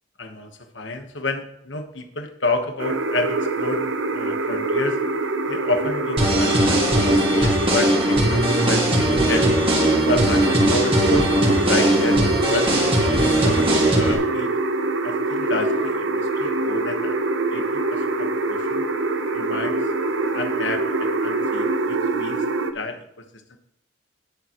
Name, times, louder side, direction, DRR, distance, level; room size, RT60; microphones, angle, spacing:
voice 1, 0.2-5.0 5.5-9.5 10.0-12.7 13.1-14.5 15.0-17.2 17.5-18.8 19.3-19.8 20.3-23.2 23.5-23.6, left 2 dB, 70° left, 6 dB, 1.4 m, -30 dB
sound 1, 2.8-22.7, right 2 dB, 80° right, 0.9 m, -24 dB
sound 2, 6.2-14.1, right 1 dB, 30° right, 2.2 m, -20 dB
18.0 x 7.0 x 3.1 m, 0.75 s
head